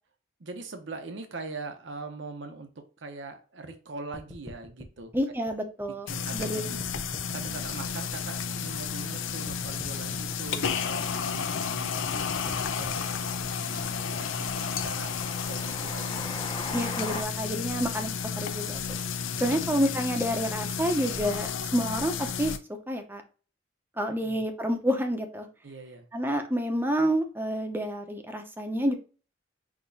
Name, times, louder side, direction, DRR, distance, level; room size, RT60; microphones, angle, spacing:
voice 1, 0.4-5.1 6.1-6.8 7.2-15.1 15.5-16.3 19.4-19.9 24.1-24.4 25.6-26.1, right 3 dB, 65° right, 6 dB, 0.8 m, -42 dB
sound 1, 4.1-6.5 6.8-9.2 9.5-14.9, equal, 5° left, 1.0 m, -48 dB
voice 2, 5.1-6.1 6.3-6.8 16.7-19.0 19.4-22.5 22.9-23.2 24.0-25.5 26.1-29.0, equal, 10° right, 5 dB, 0.7 m, -29 dB
sound 2, 6.1-22.6, left 6 dB, 85° left, 0.5 m, -32 dB
Train, 13.0-17.2, left 2 dB, 25° left, 0.7 m, -40 dB
6.2 x 2.9 x 2.7 m, 0.36 s
head